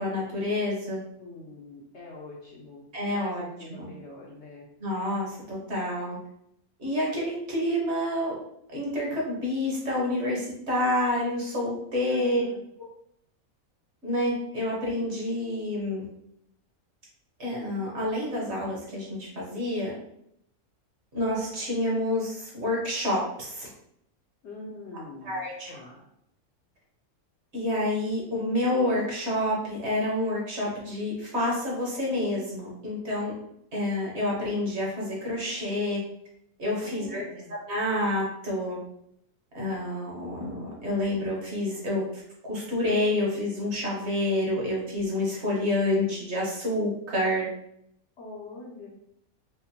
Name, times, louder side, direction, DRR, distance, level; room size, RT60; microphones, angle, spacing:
voice 1, 0.0-1.0 2.9-3.4 3.7-3.9 4.8-6.2 6.8-8.3 8.7-12.4 12.8-12.9 14.0-16.0 17.4-19.9 21.1-23.7 25.2-25.7 27.5-33.3 33.7-36.0 36.6-37.2 37.7-38.8 39.5-47.4, left 1 dB, 50° right, -4 dB, 1.4 m, -28 dB
voice 2, 1.2-4.7 12.1-12.6 24.4-26.0 36.8-37.5 48.2-48.9, left 2 dB, 60° left, -2 dB, 0.9 m, -44 dB
4.9 x 2.1 x 2.9 m, 0.74 s
omnidirectional pair, 1.5 m